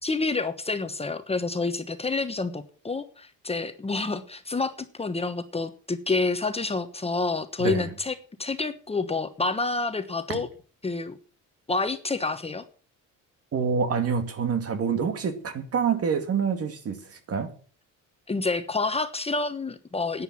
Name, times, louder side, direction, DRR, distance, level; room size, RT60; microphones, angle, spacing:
voice 1, 0.0-4.7 5.0-10.5 10.8-11.2 11.7-12.6 18.3-20.2, left 3 dB, 20° left, 1.2 m, -28 dB
voice 2, 7.6-7.9 10.3-10.4 13.5-17.5, right 6 dB, 50° right, 2.3 m, -27 dB
10.5 x 9.7 x 7.3 m
cardioid pair, 105°, 31 cm